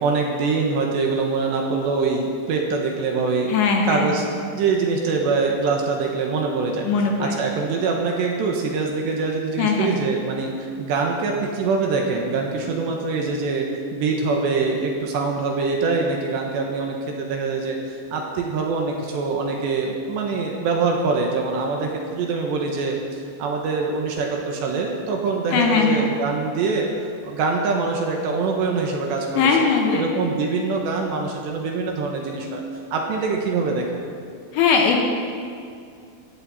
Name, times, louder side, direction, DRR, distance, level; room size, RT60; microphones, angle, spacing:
voice 1, 0.0-3.5 3.9-4.3 4.5-6.9 7.2-23.0 23.4-29.3 29.6-32.6 32.9-34.0, right 4 dB, 70° right, 1 dB, 3.1 m, -24 dB
voice 2, 3.5-4.2 6.8-7.4 9.6-10.0 25.5-26.1 29.3-30.1 34.5-35.0, left 5 dB, 70° left, 1 dB, 3.1 m, -20 dB
18.0 x 15.0 x 4.3 m, 2.3 s
omnidirectional pair, 5.9 m